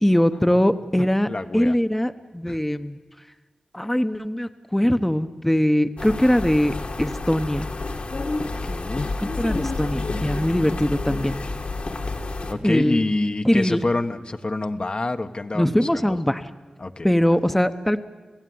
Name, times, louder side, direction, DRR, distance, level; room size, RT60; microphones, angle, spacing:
voice 1, 0.0-1.3 1.5-3.0 3.7-7.7 9.4-11.4 12.6-13.0 13.4-13.8 15.5-16.5 17.0-18.0, equal, 10° left, 9 dB, 0.9 m, -21 dB
voice 2, 1.0-1.8 2.5-2.6 8.6-9.2 12.5-16.2 16.8-17.4, left 2 dB, 45° left, 7 dB, 1.1 m, -27 dB
sound 1, 6.0-12.5, left 3 dB, 60° left, 2.2 m, -29 dB
29.5 x 16.5 x 9.5 m, 1.3 s
wide cardioid pair, 70°, 2 cm